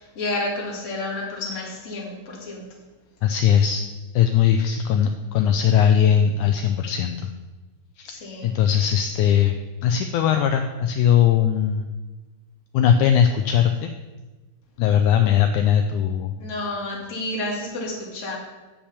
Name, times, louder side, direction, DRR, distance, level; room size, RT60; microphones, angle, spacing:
voice 1, 0.0-2.6 8.1-8.5 16.4-18.4, left 2 dB, 30° left, -2 dB, 1.6 m, -30 dB
voice 2, 3.2-3.8 4.1-7.3 8.0-8.1 8.4-9.6 9.8-11.9 12.7-13.9 14.8-16.4, left 9 dB, 80° left, 6 dB, 1.8 m, -19 dB
8.3 x 5.8 x 7.0 m, 1.2 s
omnidirectional pair, 3.9 m